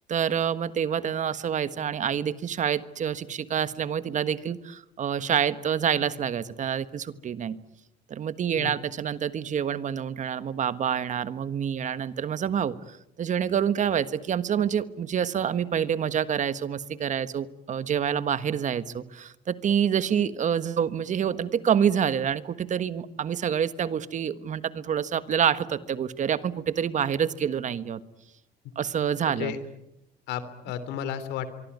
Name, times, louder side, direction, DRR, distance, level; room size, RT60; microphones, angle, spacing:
voice 1, 0.1-7.6 8.1-28.0 28.7-29.5, right 8 dB, 45° right, 13 dB, 1.5 m, -27 dB
voice 2, 29.2-29.6 30.3-31.5, left 9 dB, 85° left, 13 dB, 3.3 m, -33 dB
24.5 x 24.5 x 9.5 m, 0.85 s
cardioid pair, 110°, 17 cm